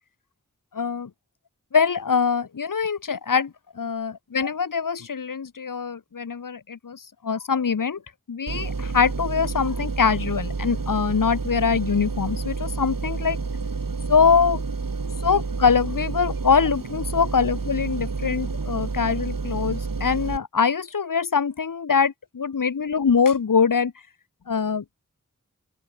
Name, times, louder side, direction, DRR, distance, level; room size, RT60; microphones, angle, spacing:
voice 1, 0.7-1.1 1.7-8.0 8.3-13.4 14.1-14.6 15.2-23.9 24.5-24.8, left 6 dB, 75° left, 1.1 m, -23 dB
sound 1, 8.5-20.4, right 4 dB, 90° right, 3.9 m, -29 dB
open air
wide cardioid pair, 40°, 33 cm